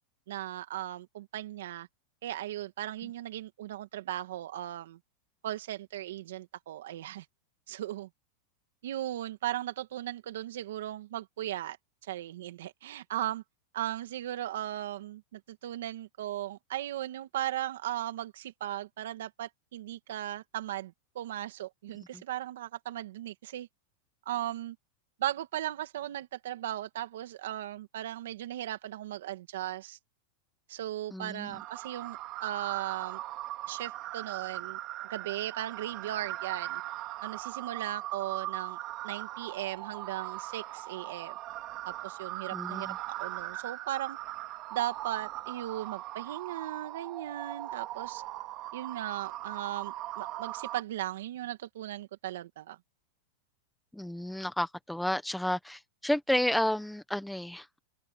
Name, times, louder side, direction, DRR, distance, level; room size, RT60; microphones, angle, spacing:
voice 1, 0.3-1.9 2.2-5.0 5.4-7.2 7.7-8.1 8.8-11.8 12.1-13.4 13.7-23.7 24.3-24.8 25.2-30.0 30.7-33.2 33.7-34.8 35.1-36.8 37.2-38.8 39.0-41.4 41.9-42.9 43.2-44.2 44.7-48.2 48.7-52.8, right 13 dB, 75° right, 2.4 m, -37 dB
voice 2, 31.1-31.6 42.5-43.0 53.9-57.8, left 1 dB, ahead, 1.3 m, -31 dB
sound 1, 31.5-50.8, right 15 dB, 30° right, 2.2 m, -40 dB
supercardioid pair, 170°, 0 cm